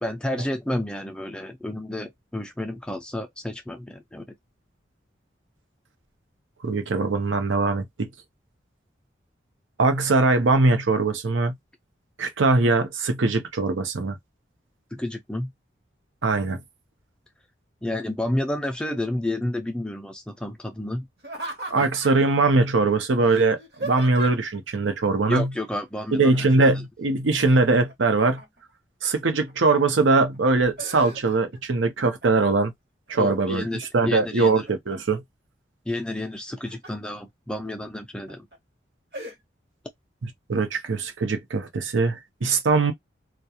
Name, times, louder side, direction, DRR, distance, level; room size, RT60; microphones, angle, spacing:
voice 1, 0.0-4.3 14.9-15.5 17.8-21.1 25.2-26.8 33.2-34.7 35.9-38.5, left 1 dB, 5° left, 0.3 m, -30 dB
voice 2, 6.6-8.1 9.8-11.5 12.2-14.2 16.2-16.6 21.7-25.5 26.1-28.4 29.0-32.7 33.1-33.6 33.9-35.2 40.5-42.9, right 3 dB, 85° right, 0.7 m, -21 dB
Laughter, 21.2-22.3 23.2-24.6 26.3-26.8 27.1-28.7 29.3-29.9 30.3-31.6 32.0-32.6 33.1-33.9 34.3-35.2 36.3-37.1 37.6-37.7 38.3-38.6 39.1-39.4, right 2 dB, 55° right, 1.0 m, -38 dB
2.3 x 2.2 x 2.8 m
head